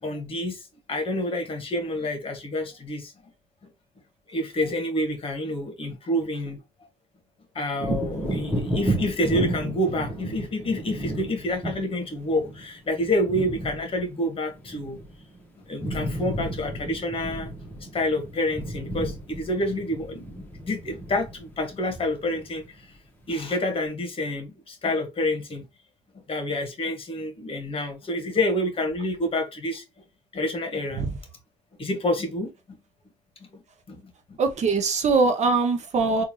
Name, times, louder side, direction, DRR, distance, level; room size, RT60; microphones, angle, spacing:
voice 1, 0.0-3.1 4.3-6.6 7.5-15.0 15.7-17.5 17.9-22.6 23.3-25.6 26.3-29.8 30.3-31.1 31.8-32.5 33.9-34.0, left 1 dB, 35° left, 1.6 m, -28 dB
Wind / Thunder, 7.8-15.4 15.6-22.9 23.3-23.4, right 1 dB, 10° left, 1.4 m, -33 dB
voice 2, 34.4-36.2, right 4 dB, 50° right, 0.8 m, -22 dB
3.7 x 2.6 x 3.1 m
cardioid pair, 90°, 16 cm